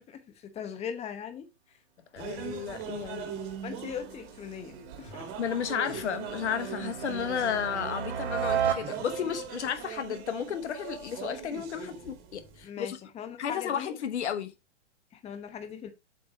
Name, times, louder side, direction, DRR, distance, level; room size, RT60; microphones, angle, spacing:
voice 1, 0.0-1.5 3.6-5.3 12.6-13.9 15.1-15.9, left 8 dB, 20° left, 1.0 m, -40 dB
voice 2, 2.1-3.3 5.4-13.0 13.4-14.5, left 8 dB, 70° left, 1.2 m, -33 dB
sound 1, 2.2-12.6, right 8 dB, 35° right, 1.8 m, -41 dB
sound 2, 3.1-9.5, right 8 dB, 65° right, 2.1 m, -35 dB
7.9 x 3.5 x 4.3 m
hypercardioid pair, 125°, 35 cm